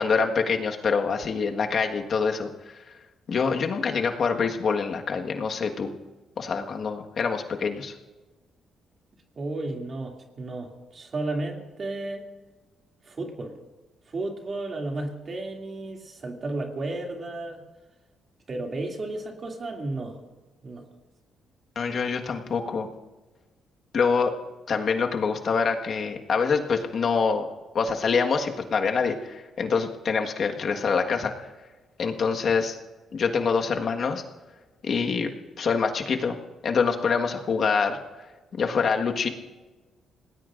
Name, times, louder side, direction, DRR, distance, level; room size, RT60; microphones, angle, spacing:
voice 1, 0.0-2.5 3.3-5.9 6.4-7.9 21.7-22.9 23.9-24.3 24.7-27.5 27.7-31.3 32.0-32.8 33.1-34.2 34.8-35.3 35.6-36.3 36.6-38.0 38.5-39.3, left 5 dB, 55° left, 3 dB, 1.5 m, -25 dB
voice 2, 9.4-12.2 13.0-13.5 14.1-17.6 18.5-20.2 20.6-20.9, right 2 dB, 40° right, 1 dB, 2.6 m, -33 dB
27.5 x 19.0 x 2.6 m, 1.2 s
cardioid pair, 90°, 0 cm